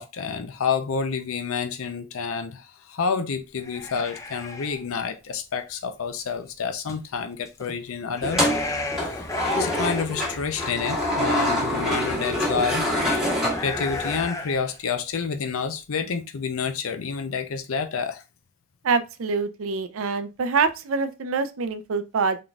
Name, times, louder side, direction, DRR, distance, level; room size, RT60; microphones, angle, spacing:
voice 1, 0.0-8.6 9.0-9.3 9.5-12.9 13.2-13.3 13.6-18.2, left 5 dB, 80° left, 0.5 m, -29 dB
sound 1, 3.6-4.8 6.9-7.0 7.5-7.7 8.0-10.1 10.4-10.5 11.7-11.8 12.9-14.8, left 3 dB, 15° left, 0.3 m, -32 dB
sound 2, 8.2-14.2, left 1 dB, 5° right, 1.4 m, -26 dB
voice 2, 18.8-22.4, right 4 dB, 75° right, 0.5 m, -25 dB
3.8 x 3.7 x 2.3 m
head